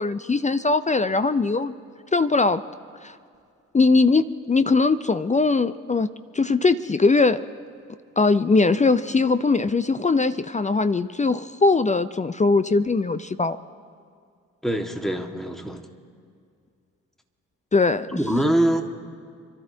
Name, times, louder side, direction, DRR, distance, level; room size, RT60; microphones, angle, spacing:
voice 1, 0.0-1.7 2.1-2.6 3.0-3.2 3.7-6.1 6.3-7.4 8.2-13.6 17.7-18.2, left 3 dB, 20° left, 12 dB, 0.6 m, -20 dB
voice 2, 14.6-15.9 18.1-18.8, right 1 dB, ahead, 4 dB, 1.9 m, -23 dB
29.0 x 13.5 x 2.9 m, 2.3 s
figure-of-eight pair, 45°, 38 cm